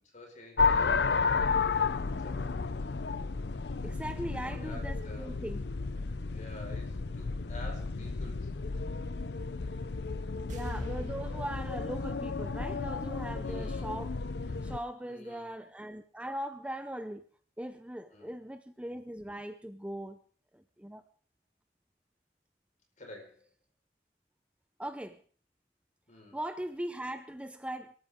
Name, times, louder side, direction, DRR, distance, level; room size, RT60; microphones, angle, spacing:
voice 1, 0.0-1.4 1.7-2.8 4.4-5.3 6.3-8.5 13.4-13.9 15.0-15.5 18.1-18.4 23.0-23.5 26.1-26.4, left 1 dB, 45° left, 4.9 m, -50 dB
sound 1, 0.6-14.8, left 4 dB, 70° left, 0.6 m, -32 dB
voice 2, 3.8-5.6 10.5-14.1 14.6-17.2 17.6-20.2 20.5-21.0 24.8-25.2 26.3-28.0, right 1 dB, 5° right, 0.6 m, -40 dB
sound 2, 10.5-13.7 13.9-14.0, equal, 45° right, 2.6 m, -47 dB
23.0 x 13.5 x 3.7 m
head